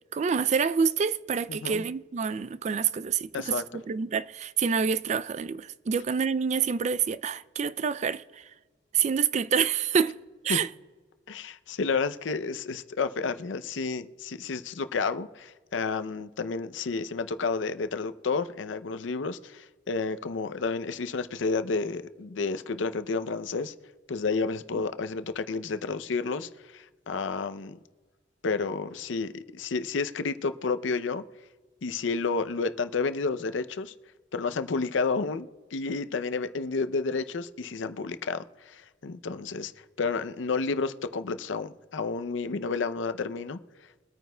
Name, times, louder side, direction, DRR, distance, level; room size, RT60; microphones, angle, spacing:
voice 1, 0.1-8.5 8.9-10.2 10.4-10.7, right 6 dB, 40° right, 0.3 m, -27 dB
voice 2, 1.5-1.8 3.3-3.6 10.5-10.6 11.3-23.7 24.1-27.8 28.4-31.2 31.8-33.9 34.3-39.7 40.0-43.6, left 4 dB, 90° left, 0.5 m, -31 dB
23.0 x 9.2 x 2.2 m
head